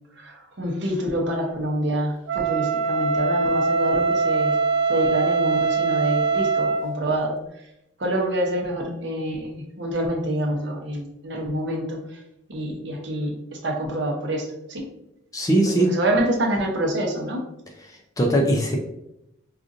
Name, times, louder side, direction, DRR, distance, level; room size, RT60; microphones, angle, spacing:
voice 1, 0.2-4.6 4.9-7.7 8.0-12.2 12.5-14.8 15.8-17.4, right 1 dB, 60° right, 1 dB, 0.7 m, -27 dB
Wind instrument woodwind instrument, 2.3-6.9, right 4 dB, 90° right, 0.4 m, -22 dB
voice 2, 15.3-15.9 17.9-18.8, right 1 dB, 15° left, 1 dB, 0.4 m, -21 dB
4.8 x 2.5 x 2.5 m, 0.83 s
head